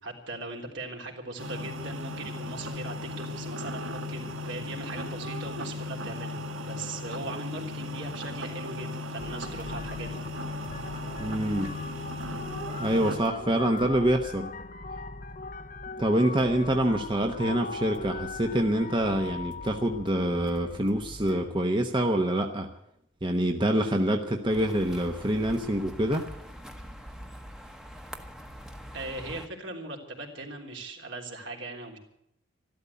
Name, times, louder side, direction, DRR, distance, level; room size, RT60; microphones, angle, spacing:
voice 1, 0.0-6.4 6.6-10.2 28.9-32.0, right 2 dB, 70° right, 1 dB, 3.3 m, -39 dB
sound 1, 1.4-13.2, left 1 dB, 90° right, 1.9 m, -36 dB
sound 2, 9.2-21.5, left 3 dB, 45° left, 0.8 m, -40 dB
voice 2, 11.2-11.7 12.8-14.5 16.0-22.7 23.2-26.3, right 1 dB, 25° right, 4 dB, 1.0 m, -26 dB
sound 3, 24.5-29.5, equal, 5° right, 1.1 m, -44 dB
13.5 x 12.5 x 8.3 m, 0.77 s
head